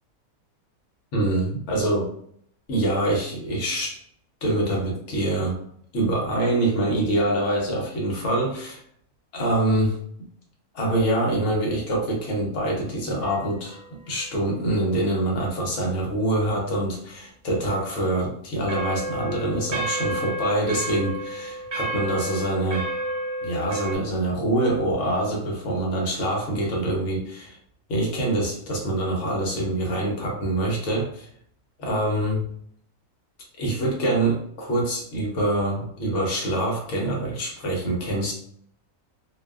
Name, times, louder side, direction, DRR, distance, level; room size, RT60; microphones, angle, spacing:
voice 1, 1.1-2.1 2.7-4.0 4.4-5.6 5.9-8.8 9.3-10.0 10.7-13.8 14.1-22.9 23.4-27.6 27.9-31.3 31.8-32.5 33.6-38.3, right 1 dB, 60° left, -2 dB, 1.0 m, -25 dB
sound 1, 13.2-13.8 18.7-24.0, right 1 dB, 65° right, 1.2 m, -31 dB
2.7 x 2.2 x 2.2 m, 0.64 s
omnidirectional pair, 1.6 m